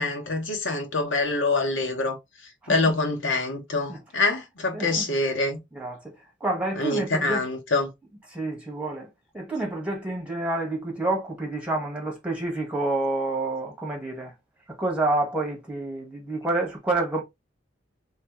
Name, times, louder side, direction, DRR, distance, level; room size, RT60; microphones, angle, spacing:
voice 1, 0.0-2.2 2.7-5.6 6.8-7.9, left 3 dB, 85° left, 1.2 m, -25 dB
voice 2, 4.7-5.0 5.7-6.1 6.4-7.4 8.3-9.1 9.3-14.3 14.8-17.2, right 2 dB, 5° right, 1.5 m, -28 dB
3.3 x 3.2 x 3.1 m
head